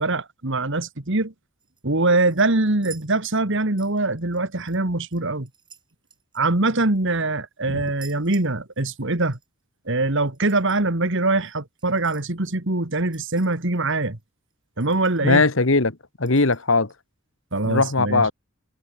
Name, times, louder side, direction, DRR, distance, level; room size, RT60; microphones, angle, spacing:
voice 1, 0.0-1.3 1.8-5.5 6.3-9.4 9.9-14.2 14.8-15.4 17.5-18.2, right 2 dB, 55° right, 2.1 m, -23 dB
sound 1, 1.6-1.8 2.3-3.5 3.8-4.8 5.1-7.1 7.8-9.1 9.3-9.5 10.3-10.8 11.8-12.3 13.1-13.8 14.2-14.3 14.5-14.6 14.8-15.4 16.2-16.9 17.6-17.7, right 7 dB, 20° right, 5.5 m, -50 dB
voice 2, 15.2-16.9 17.6-18.3, left 3 dB, 60° left, 1.5 m, -19 dB
head